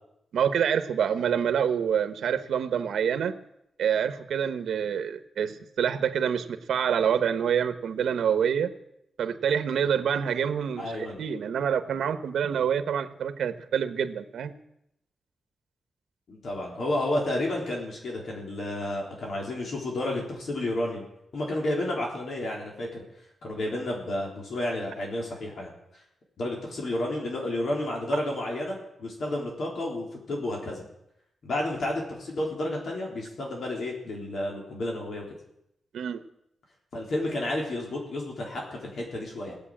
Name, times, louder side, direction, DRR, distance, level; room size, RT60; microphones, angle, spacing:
voice 1, 0.3-3.3 3.8-8.7 9.2-14.5 35.9-36.2, right 8 dB, 90° right, 10 dB, 1.2 m, -27 dB
voice 2, 10.8-11.2 16.3-21.1 21.3-23.0 23.4-25.7 26.4-30.8 31.4-35.2 36.9-39.5, left 1 dB, 60° left, -1 dB, 3.7 m, -31 dB
17.5 x 8.3 x 8.7 m, 0.79 s
wide cardioid pair, 145°, 0 cm